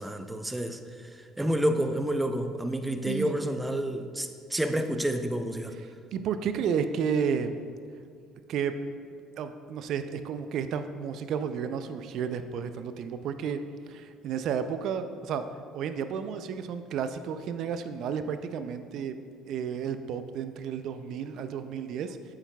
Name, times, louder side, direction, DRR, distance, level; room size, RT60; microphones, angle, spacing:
voice 1, 0.0-5.7, right 1 dB, 10° right, 7 dB, 0.6 m, -29 dB
voice 2, 6.1-7.5 8.5-8.8 9.4-13.6 13.9-15.4 15.7-19.2 19.5-22.2, right 7 dB, 65° right, 10 dB, 0.4 m, -32 dB
8.5 x 7.2 x 2.3 m, 2.2 s
hypercardioid pair, 70°, 0 cm